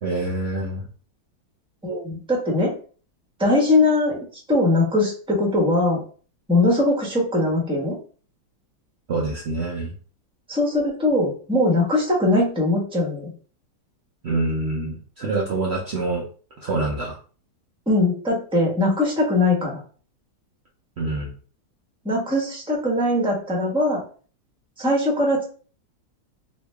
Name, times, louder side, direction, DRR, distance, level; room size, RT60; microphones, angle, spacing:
voice 1, 0.0-0.8 9.1-9.9 14.2-16.2 16.6-17.2 21.0-21.3, right 2 dB, 75° right, -3 dB, 0.6 m, -26 dB
voice 2, 1.8-2.8 3.4-4.2 4.5-6.0 6.5-8.0 10.5-13.3 17.9-19.8 22.0-24.0 24.8-25.4, left 2 dB, 5° right, -4 dB, 0.8 m, -21 dB
3.1 x 2.7 x 3.2 m, 0.40 s
omnidirectional pair, 2.0 m